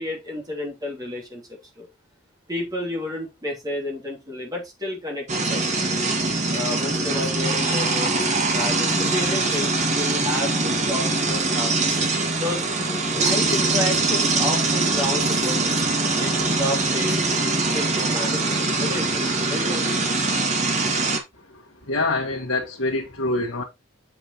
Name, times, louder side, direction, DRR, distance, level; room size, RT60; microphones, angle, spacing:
voice 1, 0.0-1.4 1.8-1.9 2.5-5.8 6.5-12.7 13.1-15.6 15.9-17.2 17.7-20.0, left 1 dB, 20° right, 2.9 m, -31 dB
sound 1, 5.3-21.2, right 3 dB, 35° right, 1.8 m, -23 dB
voice 2, 21.9-23.6, left 2 dB, 80° left, 1.6 m, -25 dB
7.4 x 7.0 x 3.0 m
head